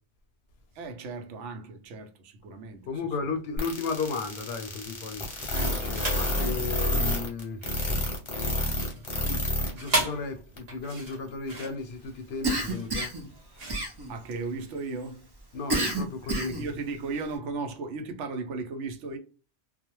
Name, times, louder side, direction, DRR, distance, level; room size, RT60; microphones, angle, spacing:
voice 1, 0.7-2.9 5.5-5.8 14.1-15.3 16.4-19.2, right 3 dB, 85° right, 0.9 m, -36 dB
voice 2, 2.9-5.3 5.6-7.6 8.9-13.1 15.5-16.5, left 4 dB, 65° left, 0.7 m, -35 dB
sound 1, 3.6-9.7 10.0-10.1 10.6-10.7, left 1 dB, 30° left, 0.6 m, -28 dB
sound 2, 5.8-6.3 6.9-14.7, right 2 dB, 60° right, 1.0 m, -35 dB
Cough, 12.4-13.3 13.7-14.3 15.7-16.7, right 2 dB, 40° right, 0.3 m, -29 dB
2.3 x 2.0 x 2.9 m
omnidirectional pair, 1.2 m